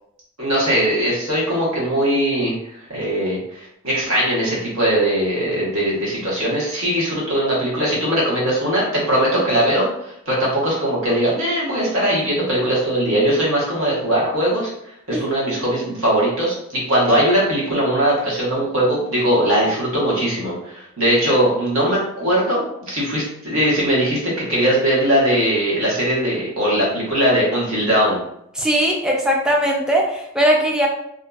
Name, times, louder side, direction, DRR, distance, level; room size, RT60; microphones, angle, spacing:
voice 1, 0.4-2.6 2.9-14.7 15.1-28.2, right 1 dB, 70° right, -5 dB, 1.1 m, -20 dB
voice 2, 28.6-30.9, right 1 dB, 5° right, -1 dB, 0.4 m, -19 dB
2.7 x 2.5 x 2.3 m, 0.76 s
head